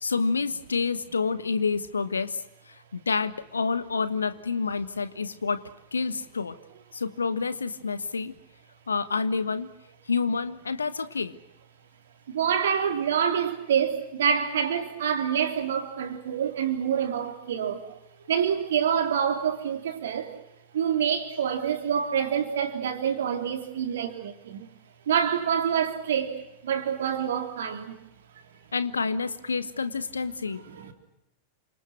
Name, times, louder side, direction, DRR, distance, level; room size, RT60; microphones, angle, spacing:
voice 1, 0.0-5.6 5.9-6.6 6.9-8.3 8.9-9.7 10.1-11.3 28.7-30.6, left 4 dB, 75° left, 1.4 m, -28 dB
voice 2, 12.3-17.9 18.3-20.3 20.7-24.7 25.1-26.4 26.6-28.0 30.7-30.9, right 8 dB, 60° right, 3.6 m, -27 dB
29.0 x 26.5 x 6.1 m
figure-of-eight pair, 90°, 0 cm